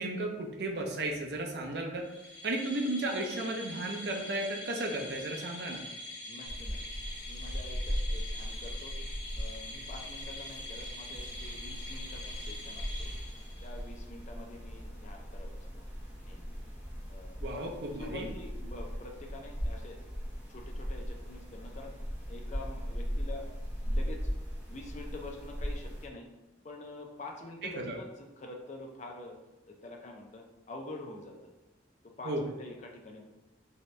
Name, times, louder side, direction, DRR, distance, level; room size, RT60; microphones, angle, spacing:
voice 1, 0.0-2.1 2.4-5.8 17.4-18.3 27.6-28.0 32.2-32.4, right 2 dB, 60° right, 2 dB, 0.5 m, -34 dB
sound 1, 2.0-13.9, left 1 dB, 65° left, 0.9 m, -44 dB
voice 2, 6.3-6.8 7.3-9.0 9.3-13.1 13.6-15.8 16.2-16.5 17.1-17.7 18.0-20.0 20.5-21.9 22.3-23.4 23.8-24.3 24.7-26.3 26.6-29.4 29.7-31.5 32.0-33.2, left 2 dB, 40° left, 2 dB, 0.4 m, -46 dB
sound 2, 6.4-26.1, equal, 10° right, 0.7 m, -38 dB
3.3 x 2.7 x 3.1 m, 1.0 s
head